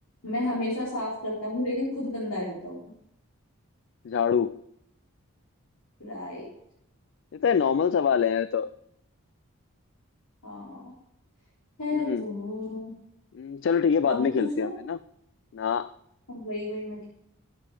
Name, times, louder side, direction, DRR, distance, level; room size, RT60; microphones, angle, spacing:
voice 1, 0.2-2.9 6.0-6.5 10.4-10.9 11.8-12.9 14.0-14.7 16.3-17.2, left 1 dB, 90° left, -8 dB, 4.0 m, -32 dB
voice 2, 4.0-4.6 7.3-8.7 11.9-12.2 13.3-15.0 15.5-15.9, left 7 dB, 55° left, 15 dB, 0.3 m, -25 dB
13.5 x 7.6 x 4.9 m, 0.77 s
head